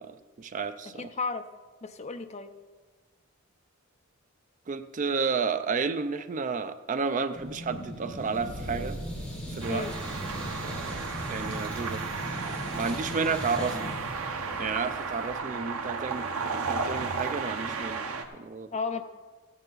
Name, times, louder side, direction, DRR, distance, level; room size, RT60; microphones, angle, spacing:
voice 1, 0.0-1.1 4.7-9.0 9.5-9.8 10.6-12.0 12.7-13.9 14.6-18.7, right 5 dB, 35° right, 11 dB, 0.4 m, -32 dB
voice 2, 1.0-1.5 1.8-2.5 9.7-9.9 18.7-19.0, left 4 dB, 30° left, 8 dB, 0.6 m, -33 dB
sound 1, 7.3-15.3, equal, 5° left, 2.6 m, -38 dB
sound 2, 9.6-18.2, right 4 dB, 90° right, 0.9 m, -34 dB
14.5 x 9.0 x 4.0 m, 1.4 s
head